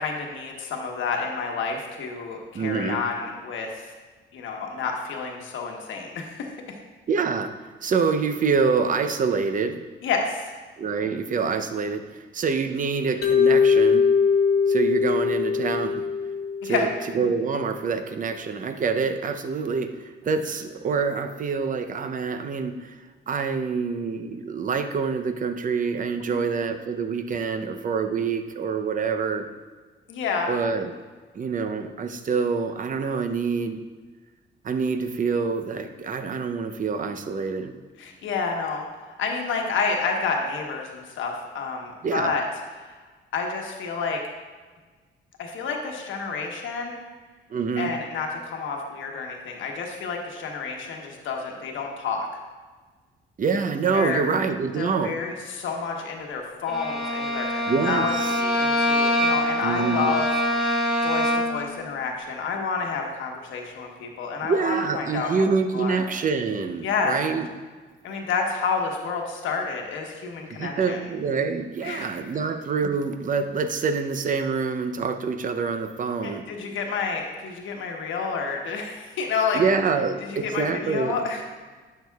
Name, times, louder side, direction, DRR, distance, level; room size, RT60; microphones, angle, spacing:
voice 1, 0.0-3.9 4.3-6.5 10.0-10.5 16.6-16.9 26.2-26.4 30.1-30.5 38.0-38.9 39.2-42.4 42.8-42.9 43.3-44.2 45.4-47.0 47.8-52.3 53.9-54.2 54.8-60.3 60.6-65.4 65.7-66.0 66.8-67.1 68.0-71.0 71.8-72.1 76.2-79.6 80.2-81.4, left 5 dB, 80° left, 1 dB, 1.2 m, -29 dB
voice 2, 2.5-3.0 7.1-7.5 7.8-9.8 10.8-14.1 14.7-16.1 16.6-16.9 17.1-23.0 23.3-29.5 30.5-30.9 31.3-33.8 34.6-37.7 42.0-42.3 47.5-47.9 53.4-55.2 57.7-58.4 59.6-60.1 64.4-67.5 70.6-76.5 79.5-81.2, right 5 dB, 40° right, 8 dB, 0.6 m, -26 dB
Mallet percussion, 13.2-17.3, left 6 dB, 55° left, 0.9 m, -21 dB
Bowed string instrument, 56.7-61.7, left 1 dB, ahead, 2.4 m, -24 dB
10.5 x 6.7 x 2.3 m, 1.4 s
cardioid pair, 90°, 20 cm